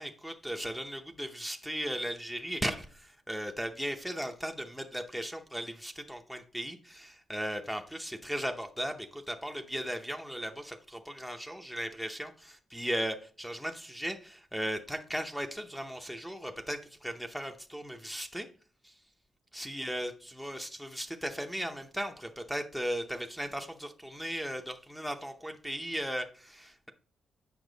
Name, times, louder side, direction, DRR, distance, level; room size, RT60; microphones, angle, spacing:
voice 1, 0.0-18.5 18.8-18.9 19.5-20.1 20.4-26.9, equal, ahead, 5 dB, 0.7 m, -37 dB
8.1 x 5.8 x 3.9 m, 0.41 s
wide cardioid pair, 145°, 0 cm